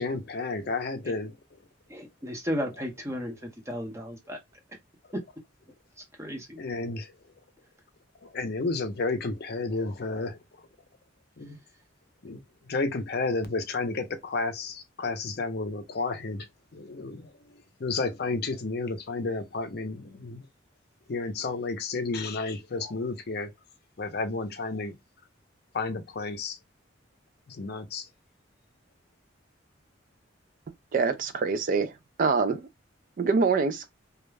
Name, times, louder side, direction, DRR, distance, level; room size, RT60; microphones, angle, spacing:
voice 1, 0.0-1.4 6.6-7.1 8.2-10.4 11.4-11.6 12.2-20.5 21.1-23.5 24.0-24.9 25.7-26.6 27.5-28.1, left 3 dB, 55° left, 0.5 m, -32 dB
voice 2, 1.9-4.4 6.2-6.6, equal, 15° right, 0.7 m, -34 dB
voice 3, 30.9-31.9 32.2-32.6 33.2-33.9, right 4 dB, 45° right, 0.3 m, -24 dB
2.3 x 2.1 x 3.1 m
head